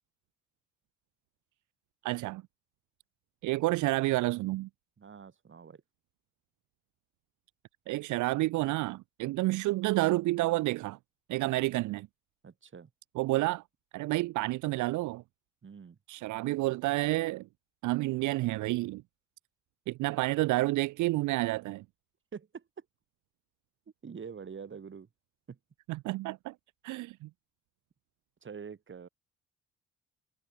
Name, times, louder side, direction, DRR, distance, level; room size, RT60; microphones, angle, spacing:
voice 1, 2.0-2.4 3.4-4.7 7.9-11.0 11.3-12.1 13.2-13.6 13.9-15.2 16.1-17.5 17.8-19.0 19.9-21.8 25.9-26.5 26.8-27.3, right 19 dB, 75° right, 0.5 m, -29 dB
voice 2, 5.0-5.8 11.4-11.5 12.4-12.9 15.6-16.0 22.3-22.8 24.0-25.1 25.5-25.6 28.4-29.1, right 6 dB, 40° right, 4.1 m, -45 dB
cardioid pair, 90°, 30 cm